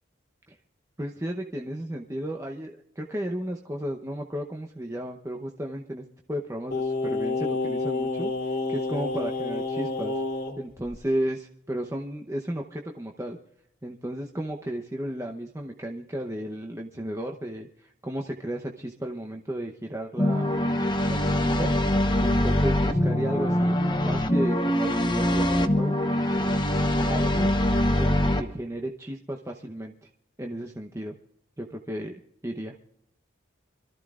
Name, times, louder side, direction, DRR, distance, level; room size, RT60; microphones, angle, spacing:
voice 1, 1.0-10.2 10.6-13.4 13.8-20.6 21.1-21.7 22.2-26.0 26.4-26.6 27.1-27.5 28.0-30.1 30.4-31.1 31.6-32.1 32.4-32.7, right 1 dB, 15° right, 2 dB, 0.8 m, -34 dB
Singing, 6.7-10.6 10.9-11.0, left 3 dB, 45° left, 1.5 m, -29 dB
sound 1, 20.2-28.4, left 1 dB, 25° left, 0.9 m, -23 dB
26.5 x 14.0 x 2.5 m, 0.74 s
head